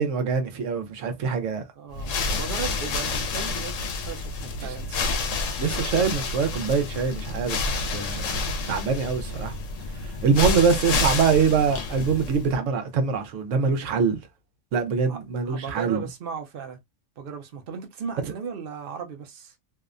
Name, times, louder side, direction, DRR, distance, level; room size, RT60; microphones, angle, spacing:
voice 1, 0.0-1.6 4.6-4.7 5.6-8.3 8.7-9.5 10.2-14.2 14.7-16.0, right 5 dB, 85° right, 1.0 m, -24 dB
voice 2, 1.8-5.1 15.0-16.8 17.2-19.5, right 6 dB, 55° right, 0.7 m, -36 dB
sound 1, 1.9-12.6, left 3 dB, 85° left, 0.9 m, -29 dB
2.7 x 2.1 x 2.4 m
omnidirectional pair, 1.3 m